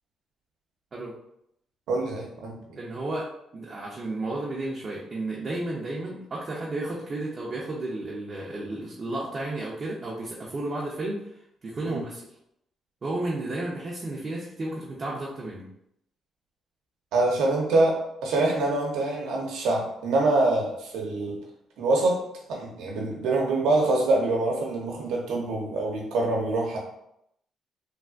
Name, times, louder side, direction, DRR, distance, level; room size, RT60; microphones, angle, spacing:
voice 1, 1.9-2.8 11.8-12.0 17.1-21.4 21.8-22.2 22.5-26.8, right 2 dB, 85° right, -1 dB, 0.7 m, -25 dB
voice 2, 2.8-3.3 3.5-11.2 11.6-12.2 13.0-15.6, right 2 dB, 40° right, -5 dB, 0.6 m, -32 dB
3.3 x 2.4 x 2.4 m, 0.77 s
cardioid pair, 90°, 0 cm